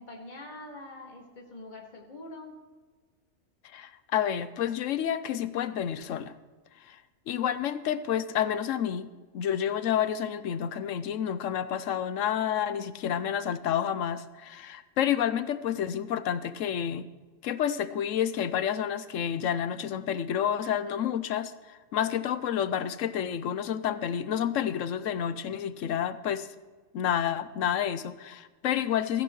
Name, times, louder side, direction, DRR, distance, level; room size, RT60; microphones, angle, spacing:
voice 1, 0.0-2.6, left 2 dB, 35° left, -1 dB, 2.2 m, -44 dB
voice 2, 3.7-6.3 6.9-7.0 7.3-9.1 9.3-17.1 17.4-26.5 26.9-29.2, left 9 dB, 80° left, 13 dB, 1.0 m, -29 dB
16.0 x 14.5 x 3.1 m, 1.3 s
omnidirectional pair, 1.3 m